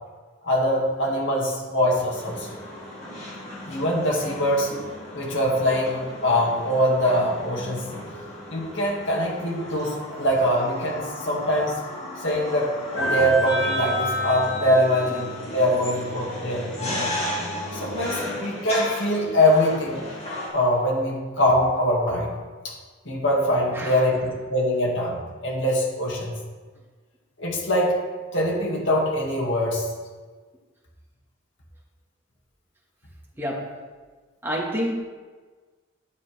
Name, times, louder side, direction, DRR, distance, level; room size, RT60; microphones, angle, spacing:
voice 1, 0.4-2.6 3.7-4.7 5.1-7.8 8.5-11.8 12.2-17.1 17.7-20.0 20.5-22.3 22.6-22.8 23.1-26.3 27.4-28.0 28.3-29.9, equal, 60° left, -3 dB, 2.1 m, -23 dB
sound 1, 2.1-20.5, left 1 dB, 30° left, 2.6 m, -33 dB
voice 2, 23.7-24.0 33.4-33.7 34.4-34.9, equal, 10° right, -3 dB, 1.5 m, -28 dB
11.0 x 7.1 x 3.4 m, 1.4 s
head